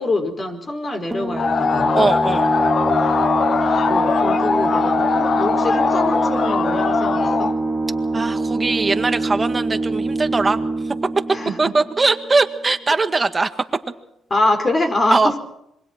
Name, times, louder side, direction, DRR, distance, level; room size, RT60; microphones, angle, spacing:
voice 1, 0.0-2.1 3.8-7.6 11.3-11.6 14.3-15.3, left 2 dB, 30° left, 5 dB, 5.0 m, -24 dB
sound 1, 1.1-12.4, right 2 dB, 5° right, 2.9 m, -24 dB
sound 2, 1.4-7.6, left 5 dB, 50° left, 1.1 m, -20 dB
voice 2, 1.9-2.5 8.1-11.0 11.6-13.5 15.1-15.3, right 3 dB, 25° right, 7 dB, 1.9 m, -20 dB
26.5 x 23.5 x 4.6 m, 0.78 s
cardioid pair, 90°, 0 cm